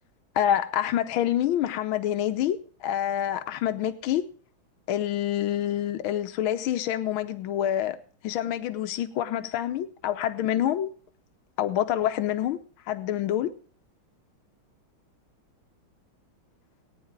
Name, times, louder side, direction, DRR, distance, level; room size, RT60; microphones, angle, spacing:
voice 1, 0.4-4.2 4.9-8.0 8.2-10.9 11.6-12.6 12.9-13.5, left 11 dB, 80° left, 1.6 m, -27 dB
19.0 x 9.6 x 3.6 m
omnidirectional pair, 2.3 m